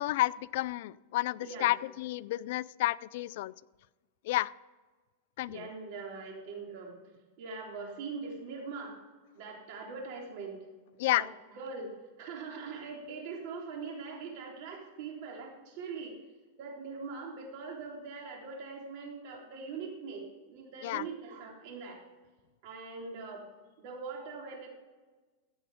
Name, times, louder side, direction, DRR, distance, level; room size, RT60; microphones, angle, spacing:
voice 1, 0.0-3.5 4.2-4.5 5.4-5.7 11.0-11.3 20.8-21.0, left 17 dB, 60° left, 18 dB, 0.3 m, -31 dB
voice 2, 1.4-1.8 5.5-6.9 7.4-8.9 9.3-10.6 11.1-11.9 12.2-16.1 16.6-22.0 22.6-23.4 23.8-24.7, right 4 dB, 55° right, 0 dB, 3.8 m, -42 dB
15.0 x 8.8 x 5.0 m, 1.3 s
supercardioid pair, 145°, 0 cm